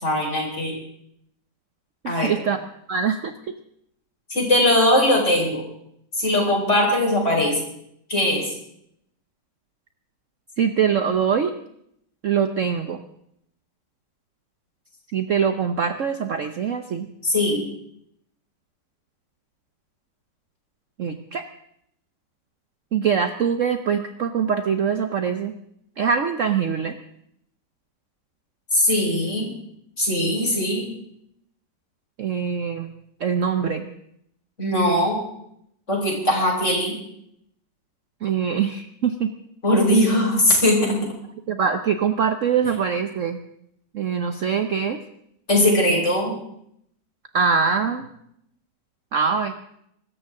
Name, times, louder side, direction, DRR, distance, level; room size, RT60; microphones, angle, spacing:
voice 1, 0.0-0.7 2.0-2.3 4.3-5.6 6.2-7.6 8.1-8.4 17.2-17.6 28.7-29.5 30.0-30.9 34.6-35.2 35.9-36.9 39.6-41.0 45.5-46.3, left 1 dB, 40° left, -1 dB, 4.9 m, -20 dB
voice 2, 2.0-2.6 2.9-3.3 10.6-11.5 12.2-13.0 15.1-17.1 21.0-21.4 22.9-25.5 26.0-27.0 32.2-32.9 33.2-33.9 38.2-39.3 41.5-43.4 43.9-45.0 47.3-48.1 49.1-49.5, right 7 dB, 55° right, 8 dB, 0.9 m, -23 dB
24.0 x 13.5 x 3.7 m, 0.74 s
omnidirectional pair, 2.0 m